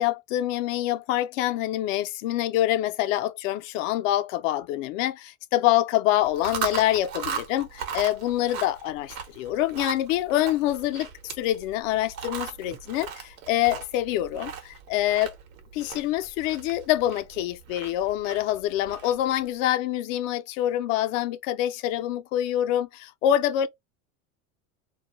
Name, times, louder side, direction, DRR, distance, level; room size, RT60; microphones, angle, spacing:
voice 1, 0.0-11.1 11.4-15.3 15.7-23.7, left 13 dB, 70° left, 0.5 m, -26 dB
Chewing mastication, 6.2-19.4, right 7 dB, 75° right, 0.9 m, -38 dB
2.3 x 2.1 x 2.9 m
hypercardioid pair, 100°, 40 cm